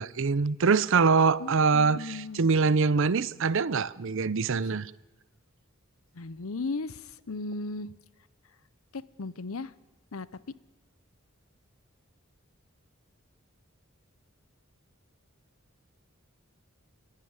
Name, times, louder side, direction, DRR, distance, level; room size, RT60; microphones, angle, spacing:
voice 1, 0.0-4.9, right 4 dB, 65° right, 0.6 m, -24 dB
voice 2, 1.4-2.4 6.1-7.9 8.9-9.7 10.1-10.3, left 3 dB, 85° left, 0.8 m, -36 dB
29.0 x 11.5 x 9.6 m
head